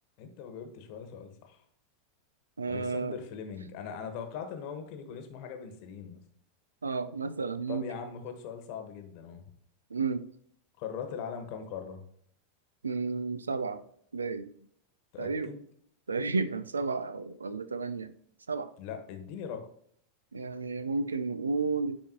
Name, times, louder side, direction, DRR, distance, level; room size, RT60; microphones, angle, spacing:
voice 1, 0.2-1.6 2.7-6.2 7.7-9.5 10.8-12.0 15.1-15.6 18.8-19.7, left 7 dB, 50° left, 6 dB, 1.2 m, -40 dB
voice 2, 2.6-3.2 6.8-7.9 9.9-10.2 12.8-13.8 14.1-14.5 15.2-15.5 16.1-18.1 18.5-18.7 20.3-22.0, right 4 dB, 85° right, 14 dB, 0.4 m, -32 dB
9.5 x 4.2 x 2.9 m, 0.67 s
figure-of-eight pair, 90°, 0 cm